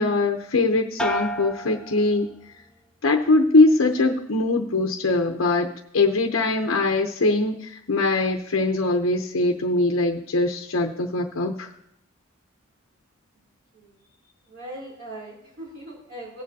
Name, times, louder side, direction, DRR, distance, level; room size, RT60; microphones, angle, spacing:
voice 1, 0.0-2.3 3.0-5.7 5.9-11.7, left 2 dB, 80° left, 3 dB, 0.8 m, -22 dB
sound 1, 1.0-2.7 3.1-3.7, right 1 dB, 5° left, 0.5 m, -33 dB
voice 2, 14.4-16.4, right 1 dB, 65° right, -4 dB, 3.0 m, -40 dB
18.0 x 7.6 x 2.8 m, 0.75 s
head